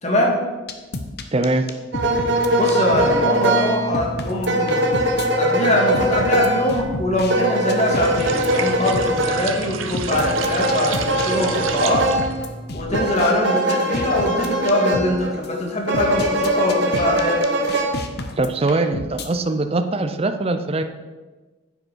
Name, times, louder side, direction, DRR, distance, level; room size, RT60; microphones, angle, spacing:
voice 1, 0.0-0.3 2.5-4.9 5.4-12.0 12.7-17.4, left 1 dB, 35° left, -1 dB, 1.9 m, -22 dB
sound 1, 0.7-3.1 3.4-3.5 3.9-5.3 5.9-7.3 7.7-8.5 8.9-9.1 9.9-13.3 13.7-15.1 15.4-15.5 15.9-19.3, left 2 dB, 55° left, 0.9 m, -31 dB
voice 2, 1.3-1.6 18.4-20.8, right 2 dB, 30° right, 8 dB, 0.5 m, -22 dB
sound 2, 1.9-15.4 15.9-17.9, right 1 dB, 60° right, 1.0 m, -22 dB
sound 3, 7.8-12.4, right 7 dB, 85° right, 0.8 m, -31 dB
9.8 x 7.9 x 4.6 m, 1.3 s
head